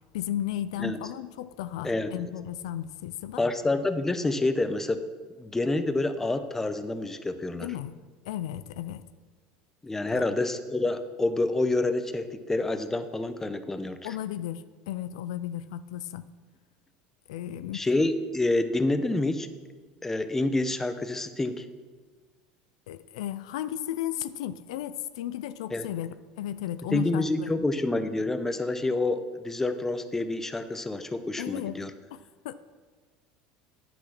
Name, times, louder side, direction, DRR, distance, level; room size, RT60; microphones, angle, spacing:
voice 1, 0.1-3.4 7.6-7.9 8.3-9.1 10.1-10.2 14.0-16.2 17.3-17.9 22.9-27.5 31.4-31.8 32.1-32.5, left 12 dB, 85° left, 13 dB, 0.4 m, -34 dB
voice 2, 3.4-5.0 5.4-7.7 9.8-14.0 17.7-19.5 20.0-21.7 25.7-25.9 26.9-31.9, left 2 dB, 10° left, 9 dB, 0.7 m, -28 dB
10.0 x 6.1 x 5.9 m, 1.5 s
supercardioid pair, 105°, 3 cm